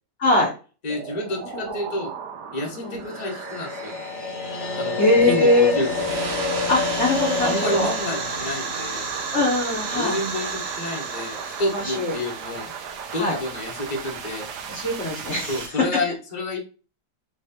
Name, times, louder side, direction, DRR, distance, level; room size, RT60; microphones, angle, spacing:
voice 1, 0.8-2.1 2.5-4.0 4.8-6.1 7.4-9.1 9.9-12.7 13.1-14.5 15.5-16.6, left 2 dB, 25° left, 0 dB, 1.1 m, -29 dB
sound 1, 0.9-15.7, right 7 dB, 75° right, 1.3 m, -38 dB
voice 2, 1.4-1.8 2.8-3.0 5.0-5.8 6.7-7.9 9.3-10.2 11.7-12.1 13.2-13.4 14.7-15.8, left 1 dB, 45° left, -1 dB, 1.3 m, -22 dB
sound 2, 3.0-10.1, left 4 dB, 70° left, 0.7 m, -29 dB
sound 3, 5.7-14.2, right 5 dB, 55° right, 0.7 m, -32 dB
3.5 x 3.2 x 4.2 m, 0.35 s
omnidirectional pair, 1.8 m